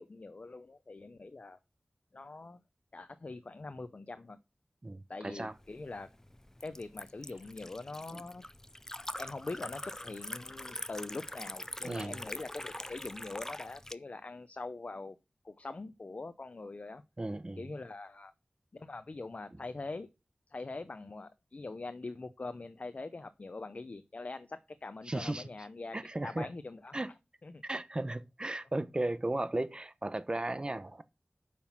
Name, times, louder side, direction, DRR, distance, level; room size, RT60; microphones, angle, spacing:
voice 1, 0.0-1.6 2.1-2.6 2.9-4.4 5.1-6.1 6.6-8.4 9.2-15.2 15.4-17.0 17.6-18.3 18.7-20.1 20.5-26.0 26.2-27.0 27.4-27.6, left 3 dB, 60° left, 0.7 m, -43 dB
voice 2, 4.8-5.5 8.1-8.2 11.8-12.2 17.2-17.6 25.1-25.5 25.9-26.5 26.9-27.1 27.6-31.0, right 2 dB, 35° right, 0.9 m, -35 dB
Liquid, 5.6-13.9, left 1 dB, 20° left, 0.5 m, -44 dB
8.5 x 5.9 x 6.0 m
wide cardioid pair, 65°, 3 cm